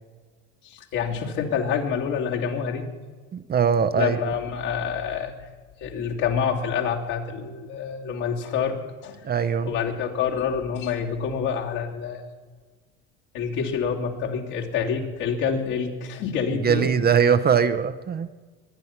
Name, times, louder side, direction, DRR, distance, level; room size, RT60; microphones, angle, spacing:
voice 1, 0.6-2.9 3.9-5.3 5.8-8.8 9.0-9.2 9.6-12.2 13.3-16.9, left 7 dB, 65° left, 3.0 m, -27 dB
voice 2, 3.3-4.2 9.2-9.8 16.6-18.3, right 7 dB, 30° right, 0.7 m, -21 dB
22.5 x 9.5 x 5.8 m
hypercardioid pair, 90°, 33 cm